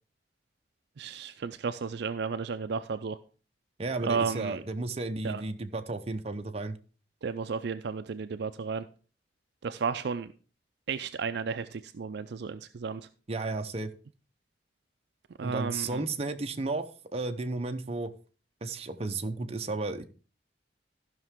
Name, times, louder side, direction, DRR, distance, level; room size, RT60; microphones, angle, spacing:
voice 1, 1.0-3.2 4.0-4.6 5.2-5.4 7.2-8.9 9.6-10.3 10.9-13.1 15.4-16.0, right 5 dB, 65° right, 10 dB, 0.4 m, -33 dB
voice 2, 3.8-6.8 13.3-13.9 15.4-18.1 18.6-20.0, right 3 dB, 35° right, 6 dB, 0.7 m, -33 dB
14.0 x 5.8 x 3.6 m, 0.36 s
head